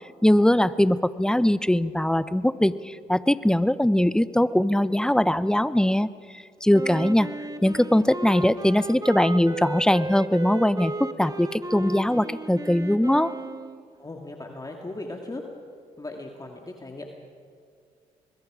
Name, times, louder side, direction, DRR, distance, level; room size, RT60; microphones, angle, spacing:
voice 1, 0.2-6.1 6.6-7.3 7.6-13.3, left 1 dB, 5° left, 16 dB, 0.8 m, -21 dB
Wind instrument woodwind instrument, 6.7-13.8, right 2 dB, 25° right, 1.8 m, -35 dB
voice 2, 14.0-15.4 16.0-17.2, left 2 dB, 25° left, 2 dB, 2.2 m, -37 dB
25.0 x 21.5 x 5.0 m, 2.2 s
supercardioid pair, 55°, 16 cm